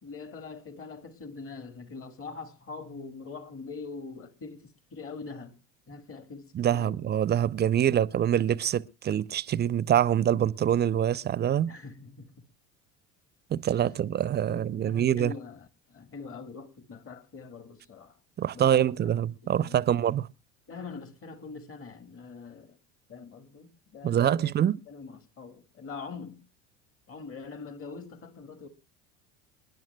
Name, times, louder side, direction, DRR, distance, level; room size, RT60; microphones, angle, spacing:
voice 1, 0.0-5.6 5.9-7.0 11.6-12.5 14.0-14.1 14.5-18.2 18.5-19.1 19.4-19.9 20.7-22.8 23.1-26.4 27.1-28.7, left 4 dB, 35° left, 1.7 m, -43 dB
voice 2, 6.5-11.7 13.5-15.3 18.4-20.3 24.0-24.8, right 10 dB, 30° right, 0.6 m, -25 dB
28.5 x 10.5 x 2.2 m
hypercardioid pair, 75°, 37 cm